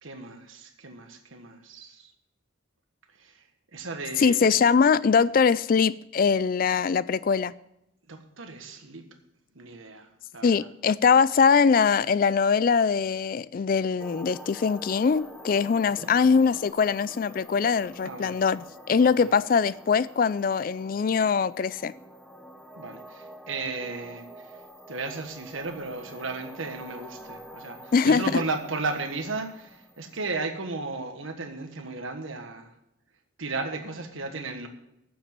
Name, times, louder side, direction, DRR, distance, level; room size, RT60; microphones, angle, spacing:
voice 1, 0.0-2.1 3.2-3.4 3.7-4.5 8.1-9.0 9.5-10.7 15.9-16.1 18.0-18.4 19.1-19.3 22.8-24.6 24.9-32.7 33.4-34.7, right 3 dB, 80° right, 1.4 m, -35 dB
voice 2, 4.2-7.5 10.4-21.9 27.9-28.2, left 5 dB, 45° left, 0.3 m, -22 dB
sound 1, 14.0-30.3, equal, ahead, 1.0 m, -47 dB
9.1 x 7.2 x 7.4 m
head